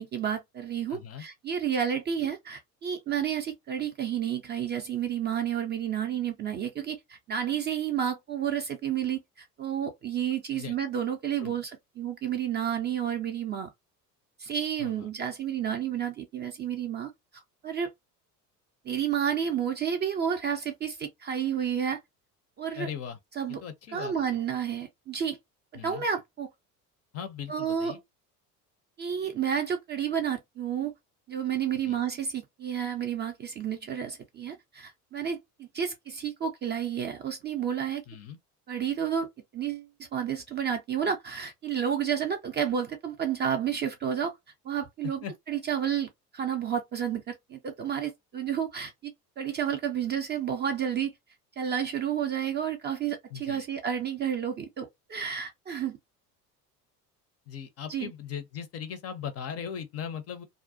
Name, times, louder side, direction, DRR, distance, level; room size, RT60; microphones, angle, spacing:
voice 1, 0.0-11.7 12.0-13.7 14.4-17.9 18.8-22.0 22.6-22.9 23.4-23.6 23.9-25.4 25.7-26.5 27.5-28.0 29.0-30.9 31.3-38.0 38.7-39.3 39.5-44.3 44.6-49.1 49.4-51.1 51.6-56.0 57.9-58.1, right 8 dB, 25° right, 0.4 m, -31 dB
voice 2, 0.9-1.2 10.5-10.8 11.4-11.6 14.8-15.1 22.8-23.2 23.5-24.1 25.7-26.0 27.1-28.0 31.8-32.0 38.1-38.4 45.2-45.3 53.3-53.7 57.5-60.5, left 8 dB, 35° left, 0.5 m, -39 dB
2.4 x 2.0 x 2.5 m
figure-of-eight pair, 65°, 46 cm